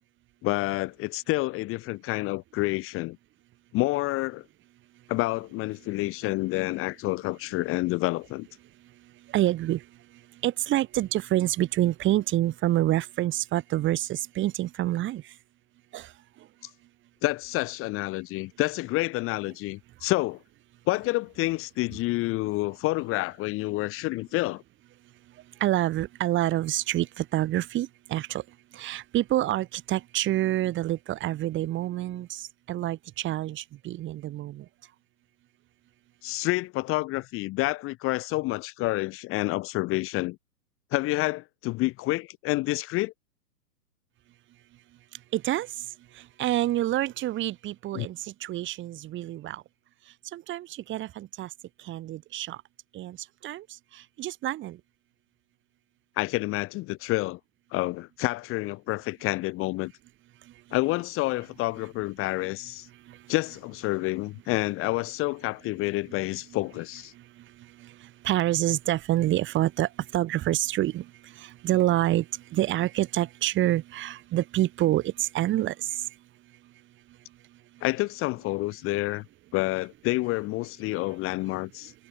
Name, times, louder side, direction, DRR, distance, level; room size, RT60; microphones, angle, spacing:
voice 1, 0.4-3.2 3.7-4.4 5.1-8.5 17.2-20.4 20.9-24.6 36.2-40.4 40.9-43.1 47.9-48.1 56.2-57.4 57.7-59.9 60.7-62.9 63.3-67.1 77.8-79.2 79.5-81.9, left 20 dB, 25° left, 1.7 m, -28 dB
voice 2, 9.3-9.8 10.4-15.2 15.9-16.1 25.6-28.4 28.7-32.4 32.7-34.6 45.3-45.7 46.4-49.6 50.3-51.5 51.9-52.6 52.9-53.2 53.4-53.6 54.2-54.8 68.2-71.0 71.4-72.2 72.5-75.9, right 14 dB, 25° right, 2.9 m, -27 dB
hypercardioid pair, 140°, 49 cm